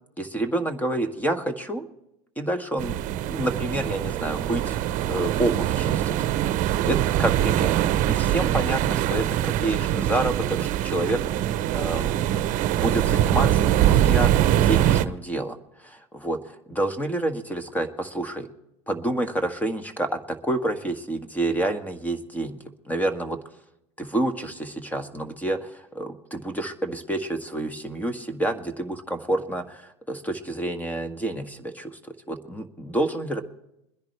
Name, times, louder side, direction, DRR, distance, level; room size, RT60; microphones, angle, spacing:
voice 1, 0.2-1.8 2.4-3.0 3.3-6.2 6.6-7.7 8.1-12.3 12.8-18.5 18.9-22.6 22.9-23.4 24.0-33.4, right 1 dB, 10° left, 8 dB, 1.5 m, -28 dB
sound 1, 2.8-15.0, right 12 dB, 50° right, 0.8 m, -23 dB
22.5 x 10.5 x 3.3 m, 0.83 s
hypercardioid pair, 95°, 17 cm